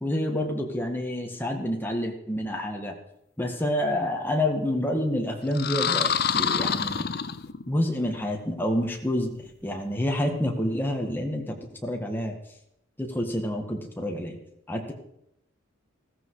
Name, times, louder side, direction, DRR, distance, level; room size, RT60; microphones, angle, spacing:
voice 1, 0.0-3.0 3.4-7.1 7.7-12.4 13.0-14.4 14.7-14.9, left 1 dB, 10° left, 2 dB, 1.9 m, -28 dB
sound 1, 5.5-7.8, left 7 dB, 50° left, 0.6 m, -26 dB
15.5 x 14.5 x 5.0 m, 0.77 s
head